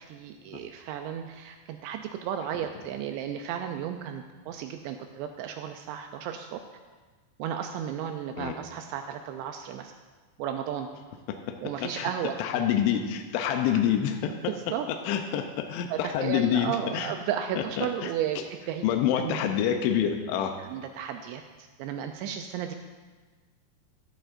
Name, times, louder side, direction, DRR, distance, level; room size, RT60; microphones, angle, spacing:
voice 1, 0.0-6.6 7.4-9.9 10.4-10.9 11.6-12.4 14.5-14.9 15.9-18.9 19.2-19.4 20.6-22.7, right 9 dB, 85° right, 5 dB, 2.7 m, -34 dB
voice 2, 12.4-14.5 15.1-17.1 17.8-18.1 18.8-20.5, left 9 dB, 80° left, 4 dB, 3.0 m, -27 dB
13.5 x 12.5 x 2.6 m, 1.4 s
omnidirectional pair, 5.4 m